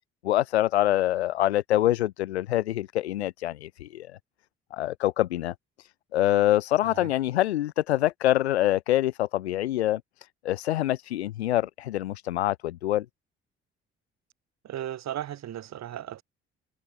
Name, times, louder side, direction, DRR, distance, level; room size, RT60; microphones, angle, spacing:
voice 1, 0.2-4.1 4.7-10.0 10.4-13.1, left 14 dB, 80° left, 0.8 m, -25 dB
voice 2, 14.6-16.2, right 11 dB, 55° right, 6.6 m, -36 dB
figure-of-eight pair, 45°, 32 cm